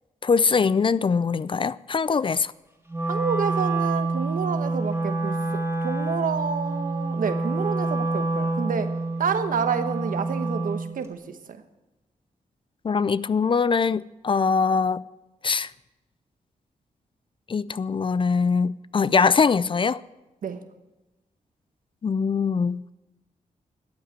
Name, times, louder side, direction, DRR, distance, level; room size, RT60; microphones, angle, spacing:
voice 1, 0.2-2.5 12.8-15.0 15.4-15.7 17.5-20.0 22.0-22.9, left 5 dB, 35° left, 0.4 m, -22 dB
Wind instrument woodwind instrument, 2.9-10.9, right 3 dB, 15° right, 2.3 m, -27 dB
voice 2, 3.0-8.9 9.2-11.6 20.4-20.6, right 6 dB, 70° right, 1.1 m, -29 dB
13.0 x 8.7 x 8.1 m
cardioid pair, 80°, 14 cm